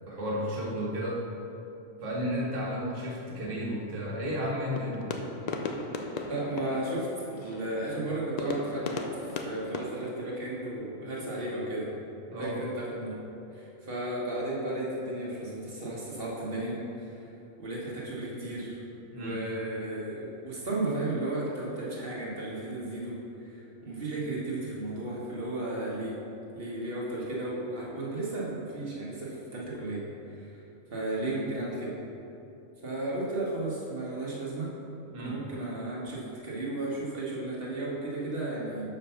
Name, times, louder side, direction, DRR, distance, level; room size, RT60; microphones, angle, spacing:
voice 1, 0.1-1.2 2.0-5.1 12.3-12.6 19.1-19.4 35.1-35.4, equal, 70° right, -3 dB, 1.6 m, -33 dB
sound 1, 4.1-10.7, left 3 dB, 75° left, 0.3 m, -38 dB
voice 2, 6.3-11.9 12.4-13.2 13.5-17.3 17.6-18.8 19.1-23.2 23.5-26.2 26.5-30.0 30.3-30.6 30.9-31.9 32.8-34.7 35.2-39.0, right 2 dB, 45° right, -5 dB, 1.5 m, -34 dB
6.7 x 5.0 x 5.6 m, 2.9 s
omnidirectional pair, 1.4 m